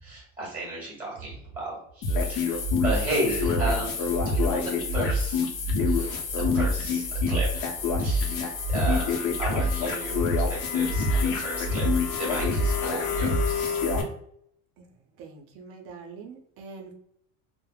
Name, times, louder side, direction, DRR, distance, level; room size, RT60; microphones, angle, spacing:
voice 1, 0.0-5.5 5.8-7.6 8.0-11.9 12.1-13.8, right 1 dB, 5° right, -6 dB, 1.2 m, -34 dB
sound 1, 2.0-14.0, left 2 dB, 80° left, 0.7 m, -26 dB
voice 2, 15.1-16.9, right 4 dB, 45° right, 2 dB, 0.5 m, -44 dB
3.2 x 2.0 x 2.2 m, 0.69 s
cardioid pair, 175°, 33 cm